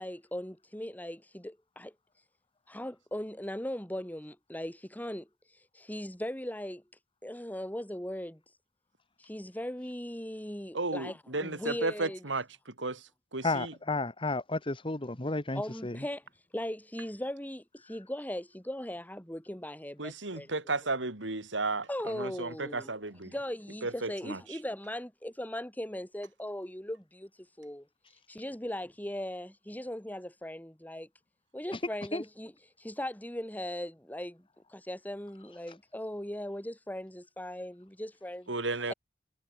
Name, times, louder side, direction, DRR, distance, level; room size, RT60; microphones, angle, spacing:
voice 1, 0.0-1.9 2.7-5.3 5.7-6.8 7.2-8.4 9.2-12.2 15.5-16.2 16.5-20.5 21.9-22.9 23.2-27.3 27.6-27.9 28.3-31.1 31.5-32.5 32.8-38.5 38.9-39.0, left 1 dB, 10° left, 2.8 m, -39 dB
voice 2, 10.7-12.5 12.8-13.7 20.0-23.3 23.8-24.6 38.5-38.9, right 3 dB, 85° right, 3.4 m, -34 dB
voice 3, 13.4-16.0 32.1-32.2, left 2 dB, 30° left, 1.6 m, -32 dB
head